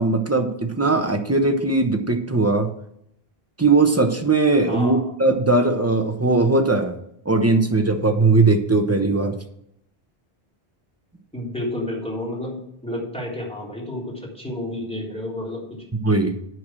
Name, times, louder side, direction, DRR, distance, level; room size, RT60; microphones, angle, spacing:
voice 1, 0.0-2.7 3.6-7.0 7.2-9.4 16.0-16.3, right 3 dB, 15° right, 6 dB, 1.0 m, -19 dB
voice 2, 4.7-5.1 11.3-12.6 12.8-15.6, left 1 dB, 5° left, -4 dB, 3.7 m, -30 dB
9.5 x 6.1 x 7.6 m, 0.75 s
omnidirectional pair, 1.0 m